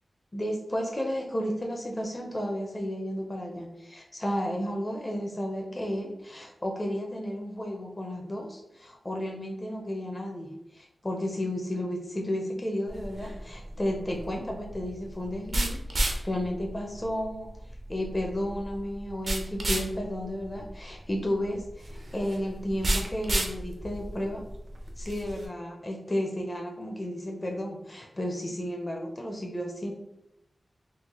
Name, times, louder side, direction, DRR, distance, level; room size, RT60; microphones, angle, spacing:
voice 1, 0.3-17.5 17.9-24.4 25.0-29.9, equal, 25° left, 1 dB, 0.4 m, -33 dB
sound 1, 12.9-25.5, right 1 dB, 55° right, 0.6 m, -33 dB
3.7 x 2.3 x 2.9 m, 0.84 s
wide cardioid pair, 100°, 0 cm